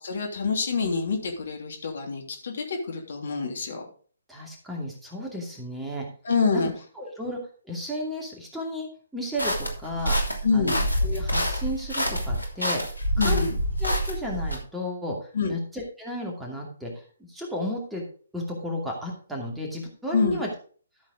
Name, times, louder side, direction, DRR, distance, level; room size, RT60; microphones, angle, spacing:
voice 1, 0.0-3.9 6.2-6.7 10.4-10.9 13.2-13.6 15.3-15.6 20.1-20.4, left 4 dB, 55° left, 2 dB, 3.0 m, -26 dB
voice 2, 4.3-6.1 7.0-7.4 7.6-8.9 9.1-10.2 10.5-10.7 11.0-12.8 13.2-13.4 13.8-16.9 17.3-18.0 18.3-20.5, left 1 dB, 5° right, -2 dB, 2.4 m, -33 dB
sound 1, 9.4-14.6, equal, 85° left, 2.9 m, -26 dB
13.0 x 7.3 x 3.7 m, 0.42 s
figure-of-eight pair, 135°, 0 cm